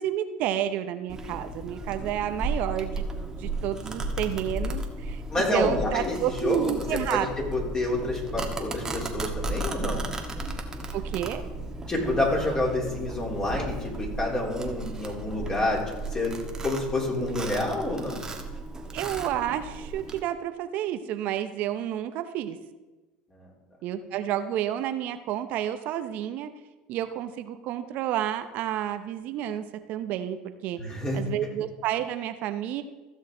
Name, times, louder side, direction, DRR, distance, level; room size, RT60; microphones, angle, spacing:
voice 1, 0.0-7.3 10.9-11.4 18.9-22.6 23.8-26.5 26.9-30.4 30.6-30.8 31.1-32.8, right 11 dB, 60° right, 9 dB, 0.7 m, -30 dB
Domestic sounds home sounds, 1.1-20.2, right 2 dB, 20° right, 1.3 m, -35 dB
voice 2, 5.3-6.7 7.1-10.0 11.9-15.8 16.1-16.3 16.6-18.2 30.8-31.2, left 2 dB, 25° left, -3 dB, 3.4 m, -28 dB
15.0 x 6.4 x 3.8 m, 1.1 s
supercardioid pair, 95°, 3 cm